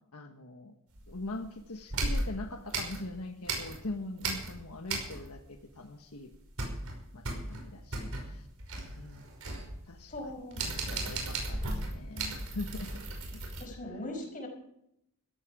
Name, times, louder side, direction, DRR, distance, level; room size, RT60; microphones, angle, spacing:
voice 1, 0.1-0.7 1.1-6.3 7.1-8.5 8.9-9.3 9.9-10.3 10.6-12.9 13.7-13.8, left 2 dB, 85° left, 5 dB, 1.4 m, -42 dB
sound 1, 0.9-1.5 1.9-3.9 4.2-5.5 5.7-5.8 6.2-13.6, right 2 dB, 75° right, 5.5 m, -36 dB
voice 2, 10.1-11.2 13.6-14.5, left 1 dB, 40° left, 3 dB, 5.3 m, -41 dB
16.0 x 14.0 x 5.0 m, 0.77 s
head